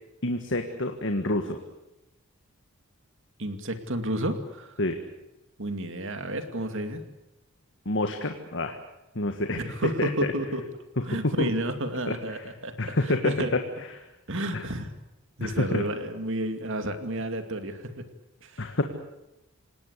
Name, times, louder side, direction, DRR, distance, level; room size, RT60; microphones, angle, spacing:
voice 1, 0.2-1.6 4.8-5.0 7.9-8.8 9.2-10.3 11.1-11.5 12.1-12.4 12.8-13.6 13.9-14.1 14.5-14.7 15.4-15.8 18.6-18.8, left 2 dB, 55° left, 5 dB, 1.7 m, -28 dB
voice 2, 3.4-4.7 5.6-7.0 9.6-10.6 11.0-13.0 13.2-13.5 14.3-14.9 15.4-18.1 18.4-18.6, right 1 dB, 60° right, 8 dB, 2.4 m, -31 dB
28.0 x 18.5 x 8.3 m, 0.95 s
head